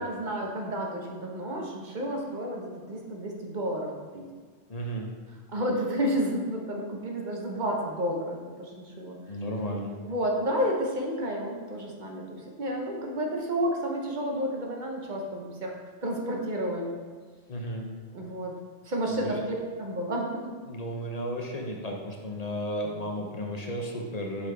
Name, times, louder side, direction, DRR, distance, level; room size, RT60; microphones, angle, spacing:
voice 1, 0.0-4.3 5.5-9.2 10.0-15.7 16.0-16.9 18.1-18.6 18.8-20.5, equal, 45° right, 0 dB, 0.9 m, -31 dB
voice 2, 4.7-5.1 9.3-10.0 17.5-17.9 19.2-19.4 20.7-24.5, equal, 45° left, 1 dB, 0.6 m, -33 dB
7.7 x 4.0 x 3.3 m, 1.5 s
omnidirectional pair, 1.2 m